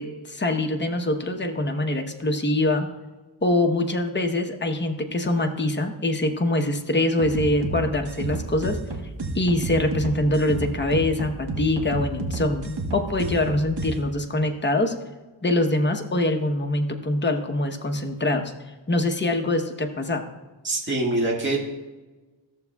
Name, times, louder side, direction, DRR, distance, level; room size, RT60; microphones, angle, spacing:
voice 1, 0.0-2.9 3.4-8.8 9.3-14.9 15.4-18.5 18.9-20.2, left 1 dB, 25° left, 4 dB, 0.9 m, -24 dB
sound 1, 7.2-13.9, right 2 dB, 60° right, 1.3 m, -31 dB
voice 2, 20.6-21.6, right 2 dB, 25° right, -3 dB, 1.8 m, -24 dB
14.5 x 6.9 x 2.3 m, 1.2 s
wide cardioid pair, 80°, 46 cm